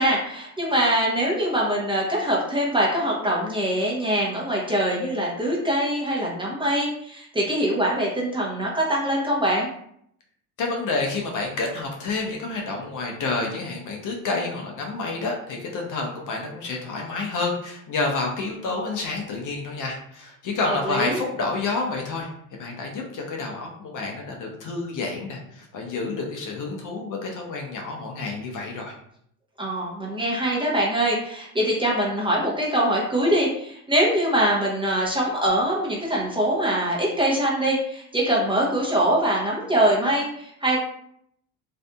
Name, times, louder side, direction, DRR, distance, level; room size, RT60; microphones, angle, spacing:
voice 1, 0.0-9.7 20.7-21.2 29.6-40.8, right 1 dB, 10° right, -4 dB, 0.8 m, -23 dB
voice 2, 10.6-22.3 22.6-28.9, left 3 dB, 45° left, 1 dB, 0.7 m, -29 dB
2.6 x 2.5 x 2.2 m, 0.69 s
supercardioid pair, 80°, 44 cm